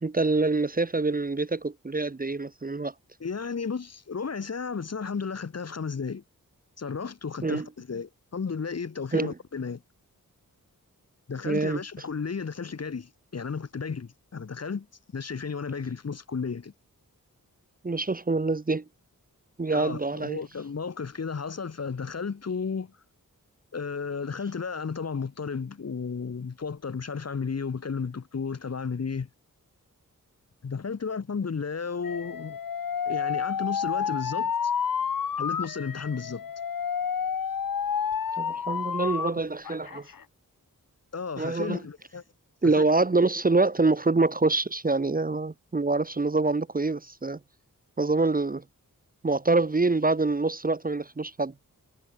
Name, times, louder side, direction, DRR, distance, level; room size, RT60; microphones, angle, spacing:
voice 1, 0.0-2.9 7.4-7.7 9.1-9.3 11.5-11.8 17.8-18.8 19.6-20.4 38.4-40.1 41.4-41.8 42.6-47.4 48.0-48.6 49.2-51.5, right 3 dB, 25° right, 0.8 m, -25 dB
voice 2, 3.2-6.2 6.8-9.8 11.3-14.9 15.1-16.7 19.7-23.0 23.7-29.3 30.6-32.6 33.1-34.7 35.4-36.5 41.1-42.2, left 5 dB, 50° left, 1.1 m, -33 dB
Alarm, 32.0-39.3 39.6-40.2, left 7 dB, 75° left, 1.3 m, -30 dB
wide cardioid pair, 105°, 34 cm